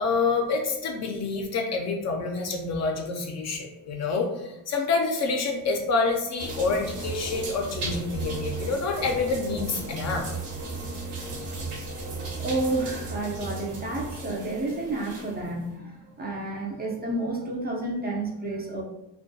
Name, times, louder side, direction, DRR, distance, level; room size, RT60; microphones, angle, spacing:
voice 1, 0.0-10.3, left 4 dB, 40° left, 2 dB, 0.4 m, -27 dB
sound 1, 6.4-15.5, right 3 dB, 70° right, 0.9 m, -35 dB
voice 2, 12.4-18.8, right 2 dB, 25° right, -2 dB, 0.4 m, -30 dB
2.2 x 2.2 x 2.6 m, 0.89 s
supercardioid pair, 85°, 43 cm